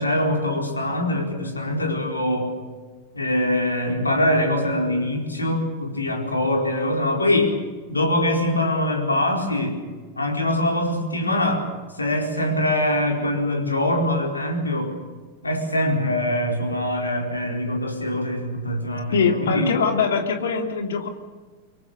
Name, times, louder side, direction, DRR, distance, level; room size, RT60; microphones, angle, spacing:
voice 1, 0.0-2.5 3.1-7.6 7.9-9.8 10.2-11.7 12.0-14.9 15.4-19.7, left 1 dB, 80° left, 2 dB, 4.5 m, -23 dB
voice 2, 19.1-21.1, left 5 dB, 65° left, 5 dB, 2.7 m, -22 dB
24.5 x 23.5 x 6.8 m, 1.4 s
figure-of-eight pair, 90°, 0 cm